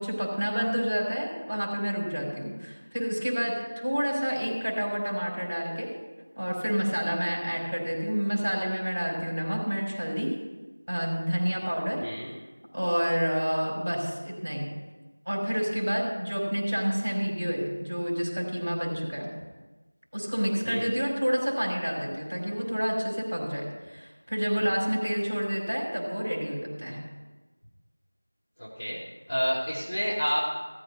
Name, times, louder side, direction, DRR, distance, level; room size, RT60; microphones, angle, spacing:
voice 1, 0.0-6.0 6.4-10.4 10.9-12.0 12.7-14.7 15.2-19.3 20.1-27.0, equal, 35° right, -4 dB, 4.5 m, -29 dB
voice 2, 12.0-12.3 20.6-20.9 28.6-29.0 29.3-30.4, equal, 20° left, -12 dB, 2.5 m, -29 dB
16.0 x 13.5 x 2.8 m, 1.2 s
figure-of-eight pair, 180°, 0 cm